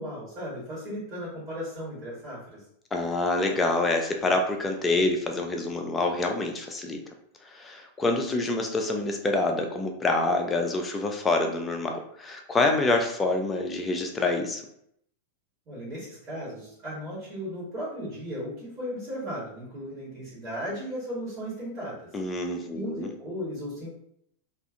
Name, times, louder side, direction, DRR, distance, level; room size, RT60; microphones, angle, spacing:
voice 1, 0.0-2.6 15.7-22.1 22.7-23.9, equal, 35° right, -8 dB, 1.3 m, -36 dB
voice 2, 2.9-7.0 7.4-14.6 22.1-23.1, left 2 dB, 15° left, 4 dB, 0.4 m, -26 dB
2.4 x 2.4 x 2.5 m, 0.73 s
figure-of-eight pair, 90°, 0 cm